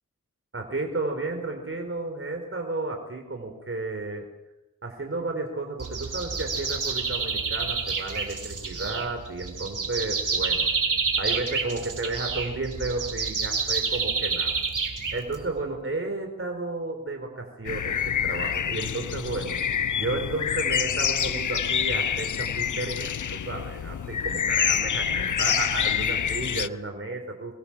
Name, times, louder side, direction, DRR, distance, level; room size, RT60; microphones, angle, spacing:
voice 1, 0.5-4.3 4.8-10.7 11.2-14.5 15.1-19.6 20.0-27.5, right 2 dB, 45° right, 3 dB, 4.5 m, -32 dB
sound 1, 5.8-15.6, right 5 dB, 80° right, 4.1 m, -28 dB
sound 2, 17.7-26.7, left 8 dB, 75° left, 0.8 m, -27 dB
26.0 x 22.5 x 7.5 m, 0.96 s
cardioid pair, 60°, 31 cm